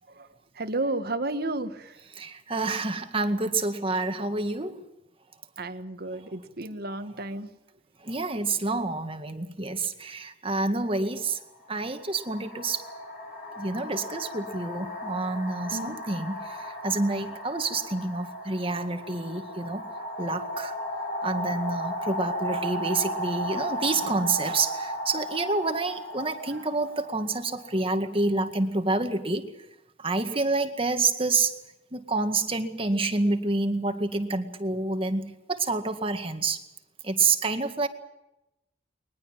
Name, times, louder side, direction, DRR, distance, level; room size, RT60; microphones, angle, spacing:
voice 1, 0.6-1.9 5.6-7.5 15.7-16.0, right 2 dB, 55° right, 9 dB, 1.7 m, -32 dB
voice 2, 2.1-4.8 8.0-11.4 11.7-12.8 13.6-19.9 20.2-20.7 21.2-29.5 30.0-31.5 31.9-36.6 37.0-37.9, right 3 dB, 30° right, 6 dB, 2.0 m, -28 dB
sound 1, 10.8-10.9 11.8-28.4, equal, 40° left, 7.5 m, -35 dB
22.0 x 21.0 x 7.6 m, 0.90 s
head